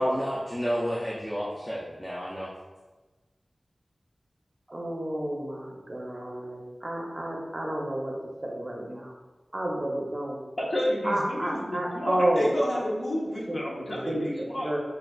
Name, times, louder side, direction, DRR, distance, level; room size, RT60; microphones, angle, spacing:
voice 1, 0.0-2.5, equal, 10° left, -6 dB, 0.4 m, -30 dB
voice 2, 4.7-8.1 8.4-9.1 9.5-10.3 11.0-12.6 13.5-14.8, right 1 dB, 35° right, -1 dB, 0.6 m, -30 dB
voice 3, 10.6-14.8, equal, 50° left, -4 dB, 0.8 m, -30 dB
4.7 x 2.4 x 2.3 m, 1.2 s
wide cardioid pair, 80°, 0 cm